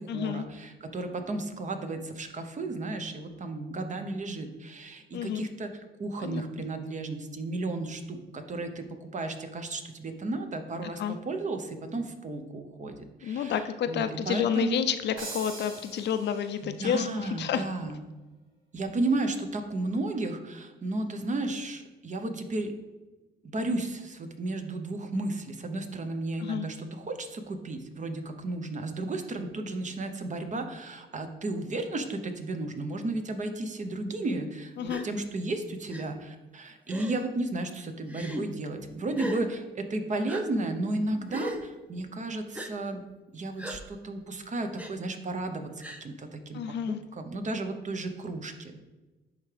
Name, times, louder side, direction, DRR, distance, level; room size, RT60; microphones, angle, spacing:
voice 1, 0.1-0.5 5.1-5.5 6.2-6.4 10.8-11.2 13.2-17.7 26.4-26.7 34.8-35.0 46.5-47.0, left 8 dB, 60° left, 10 dB, 0.5 m, -30 dB
voice 2, 0.9-4.5 5.4-5.7 6.0-8.0 8.5-8.7 9.1-11.0 11.3-11.6 11.9-12.9 13.9-14.9 16.8-18.0 18.7-20.4 20.8-21.8 22.0-22.7 23.5-23.9 24.4-25.3 25.6-26.7 27.7-28.2 28.4-32.0 32.4-34.5 34.8-35.6 35.9-36.1 36.9-37.7 38.0-39.5 39.9-41.5 41.9-42.4 42.7-43.0 43.3-43.8 44.1-44.2 44.5-45.6 47.3-48.5, right 2 dB, 40° right, 7 dB, 0.8 m, -32 dB
sound 1, 15.2-16.8, right 2 dB, 90° right, 1.6 m, -42 dB
Gasp, 34.9-35.1 35.9-36.0 36.9-37.3 38.1-38.4 39.1-39.4 40.3-40.4 41.3-41.6 42.5-42.7 43.6-43.8 44.8-44.9 45.8-46.0, equal, 5° right, 0.7 m, -37 dB
10.5 x 3.6 x 3.3 m, 1.2 s
cardioid pair, 90°, 20 cm